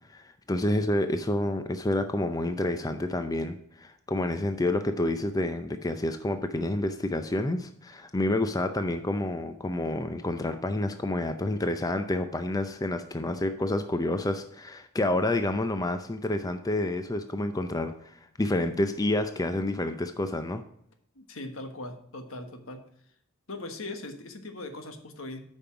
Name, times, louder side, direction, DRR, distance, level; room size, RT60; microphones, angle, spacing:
voice 1, 0.1-20.6, left 1 dB, 15° left, 8 dB, 0.5 m, -29 dB
voice 2, 21.1-22.9 23.5-25.4, left 2 dB, 70° left, 7 dB, 1.3 m, -40 dB
8.6 x 5.4 x 5.7 m, 0.71 s
head